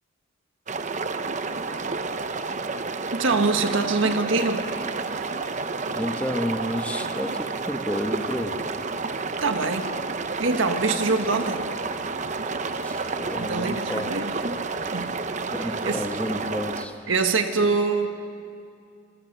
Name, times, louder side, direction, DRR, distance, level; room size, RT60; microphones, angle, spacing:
sound 1, 0.7-16.9, right 4 dB, 35° right, 0.8 m, -30 dB
voice 1, 3.1-4.7 9.4-9.9 10.4-11.7 13.4-14.3 14.8-15.2 15.6-16.0 17.1-18.1, right 3 dB, 80° right, 6 dB, 1.7 m, -24 dB
voice 2, 5.9-8.6 12.8-14.1 15.5-17.1, equal, 5° left, 5 dB, 1.1 m, -31 dB
26.0 x 21.5 x 6.7 m, 2.4 s
head